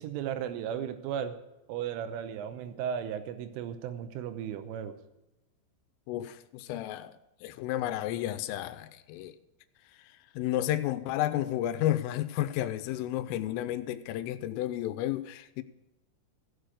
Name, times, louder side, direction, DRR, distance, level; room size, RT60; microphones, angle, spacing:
voice 1, 0.0-1.4 1.7-4.9, right 9 dB, 80° right, 9 dB, 3.2 m, -35 dB
voice 2, 6.1-9.4 10.4-15.6, left 13 dB, 85° left, 11 dB, 3.1 m, -32 dB
16.0 x 6.8 x 6.3 m, 0.99 s
omnidirectional pair, 6.0 m